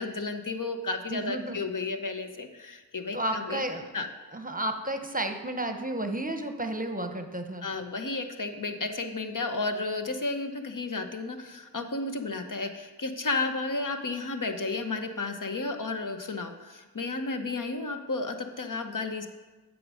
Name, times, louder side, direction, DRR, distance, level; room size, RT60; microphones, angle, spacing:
voice 1, 0.0-3.6 3.9-4.1 7.6-19.3, left 3 dB, 50° left, 6 dB, 0.9 m, -32 dB
voice 2, 1.1-1.6 3.1-3.9 4.3-7.7, right 1 dB, 20° right, 6 dB, 0.9 m, -32 dB
8.6 x 5.1 x 6.3 m, 1.2 s
wide cardioid pair, 45°, 41 cm